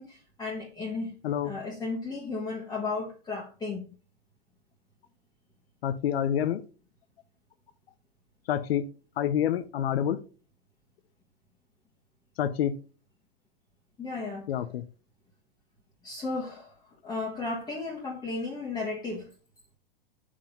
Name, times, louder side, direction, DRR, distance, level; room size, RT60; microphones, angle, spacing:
voice 1, 0.0-1.2 1.4-3.8 14.0-14.4 16.0-16.7 17.0-19.3, left 3 dB, 15° left, -3 dB, 1.4 m, -34 dB
voice 2, 5.8-6.6 8.5-8.8 9.2-10.2 12.4-12.7 14.5-14.8, left 10 dB, 80° left, 12 dB, 0.7 m, -27 dB
5.6 x 5.0 x 5.2 m, 0.37 s
hypercardioid pair, 135°, 30 cm